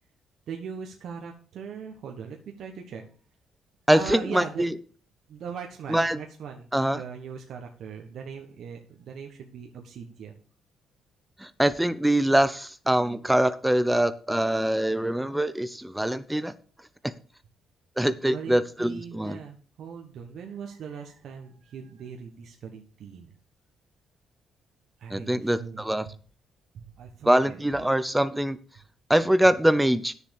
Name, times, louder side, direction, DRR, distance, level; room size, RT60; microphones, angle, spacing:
voice 1, 0.5-3.0 3.9-4.7 5.3-10.3 18.3-23.3 25.0-25.8 26.7-27.8, right 6 dB, 70° right, 2 dB, 1.4 m, -40 dB
voice 2, 3.9-4.7 5.9-6.2 6.7-7.0 11.4-16.5 18.0-19.4 25.1-26.1 27.3-28.6 29.1-30.1, right 1 dB, 5° right, 13 dB, 0.7 m, -23 dB
9.6 x 7.0 x 6.5 m, 0.40 s
cardioid pair, 90°, 0 cm